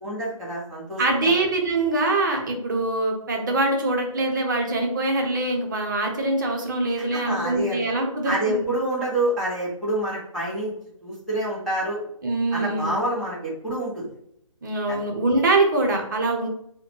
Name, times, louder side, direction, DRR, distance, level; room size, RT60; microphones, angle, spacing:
voice 1, 0.0-1.3 7.1-7.9 8.2-10.7 11.0-12.0 12.5-14.1 14.9-15.0 15.8-15.9, right 1 dB, ahead, -12 dB, 0.8 m, -27 dB
voice 2, 1.0-8.7 12.2-13.0 14.6-16.5, right 2 dB, 35° right, 2 dB, 0.7 m, -23 dB
3.4 x 2.2 x 3.0 m, 0.73 s
hypercardioid pair, 160°, 17 cm